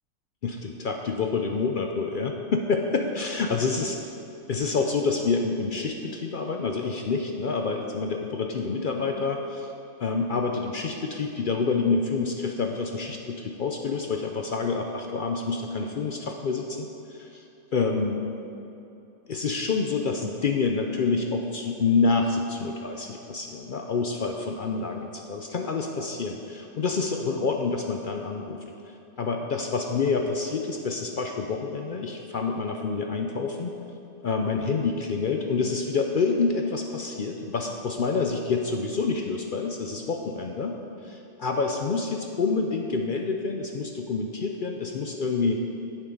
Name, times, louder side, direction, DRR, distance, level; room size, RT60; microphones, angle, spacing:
voice 1, 0.4-3.9 4.5-9.7 10.0-17.4 17.7-18.2 19.3-28.6 29.2-33.7 34.2-40.8 41.0-45.6, left 4 dB, 60° left, 2 dB, 0.5 m, -27 dB
8.3 x 7.3 x 5.3 m, 2.8 s
omnidirectional pair, 1.5 m